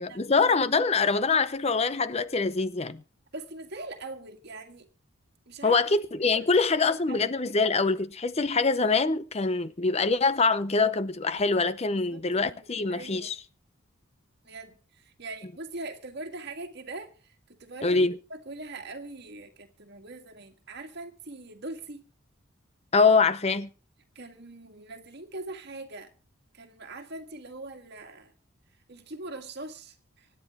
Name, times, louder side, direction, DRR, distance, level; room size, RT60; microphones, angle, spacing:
voice 1, 0.0-3.0 5.6-13.4 17.8-18.2 22.9-23.7, left 4 dB, 30° left, 0.7 m, -24 dB
voice 2, 3.3-4.9 5.5-5.8 6.3-7.6 11.9-13.3 14.4-22.1 24.2-26.1 26.5-28.3 28.9-30.3, right 2 dB, 50° right, 1.9 m, -42 dB
25.0 x 9.8 x 3.7 m
head